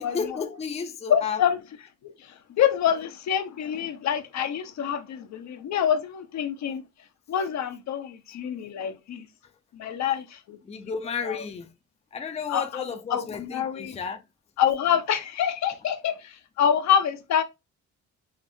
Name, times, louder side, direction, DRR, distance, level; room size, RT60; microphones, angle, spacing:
voice 1, 0.0-1.4 10.7-11.7 12.1-14.2, left 6 dB, 20° left, 0.5 m, -32 dB
voice 2, 1.1-1.6 2.6-6.8 7.3-9.3 9.7-10.6 11.2-11.4 12.5-14.0 14.6-17.4, left 9 dB, 65° left, 0.7 m, -26 dB
5.1 x 2.0 x 2.5 m
cardioid pair, 90°, 30 cm